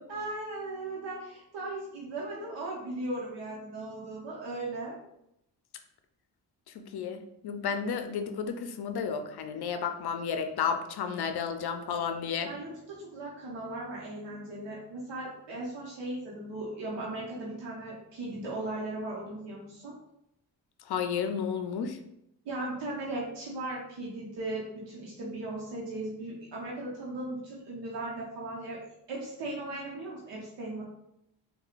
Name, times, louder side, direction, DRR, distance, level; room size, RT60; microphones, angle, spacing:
voice 1, 0.1-5.0 12.4-19.9 22.4-28.8 29.1-30.8, right 2 dB, 80° right, -5 dB, 0.9 m, -37 dB
voice 2, 6.8-12.5 20.9-22.0, left 6 dB, 65° left, 8 dB, 0.5 m, -32 dB
4.3 x 2.2 x 2.4 m, 0.79 s
supercardioid pair, 55°, 43 cm